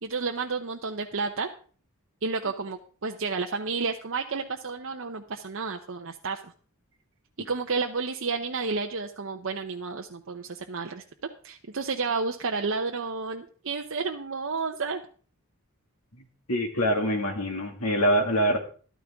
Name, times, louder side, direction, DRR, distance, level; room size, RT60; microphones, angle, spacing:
voice 1, 0.0-1.5 2.2-6.5 7.4-11.0 11.4-15.0, right 4 dB, 60° right, 3 dB, 0.8 m, -31 dB
voice 2, 16.5-18.6, equal, 80° left, 3 dB, 2.2 m, -24 dB
13.5 x 12.5 x 3.6 m, 0.42 s
head